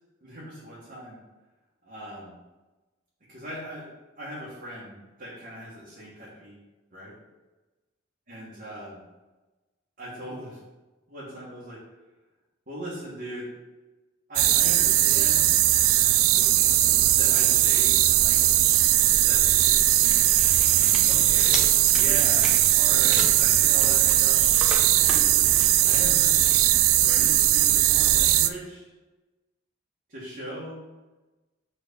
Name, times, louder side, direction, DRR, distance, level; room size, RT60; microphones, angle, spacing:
voice 1, 0.2-1.2 1.8-2.3 3.3-3.9 4.2-6.6 6.9-7.1 8.3-9.0 10.0-10.6 11.1-11.8 12.7-13.5 14.3-15.4 16.4-18.4 19.2-20.2 20.7-24.4 24.7-25.5 25.8-26.7 27.0-28.9 30.1-30.8, equal, 45° right, -9 dB, 1.6 m, -39 dB
sound 1, 14.4-28.5, right 14 dB, 85° right, 0.3 m, -20 dB
sound 2, 18.0-28.2, equal, 5° right, 0.7 m, -38 dB
4.5 x 4.0 x 5.3 m, 1.1 s
head